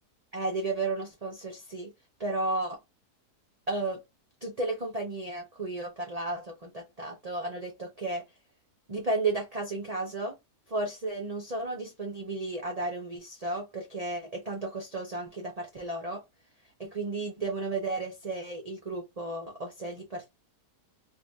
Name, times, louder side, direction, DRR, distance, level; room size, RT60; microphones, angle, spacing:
voice 1, 0.3-1.9 2.2-2.8 3.7-4.0 4.4-8.2 8.9-10.3 10.7-16.2 16.8-20.3, right 2 dB, 60° right, 0.4 m, -33 dB
3.0 x 2.5 x 3.4 m
omnidirectional pair, 1.6 m